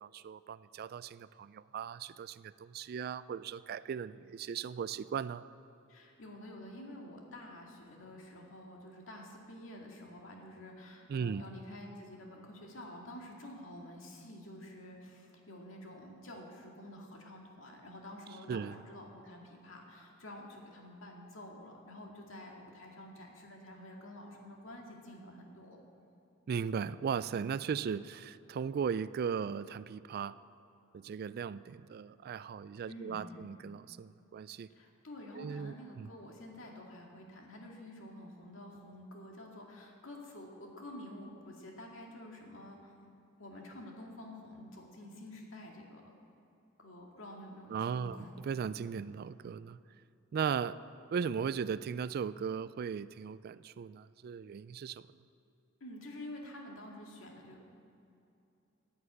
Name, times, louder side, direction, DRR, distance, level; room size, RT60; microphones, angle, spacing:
voice 1, 0.0-5.4 11.1-11.4 18.5-18.8 26.5-30.4 30.9-34.7 35.4-36.1 47.7-48.2 48.4-49.8 50.3-50.8 51.1-55.0, right 6 dB, 50° right, 16 dB, 0.3 m, -37 dB
voice 2, 5.9-25.8 32.9-33.5 34.7-42.9 43.4-46.1 46.8-48.3 55.8-57.6, left 1 dB, 70° left, 0 dB, 2.1 m, -49 dB
11.0 x 8.7 x 8.5 m, 2.7 s
head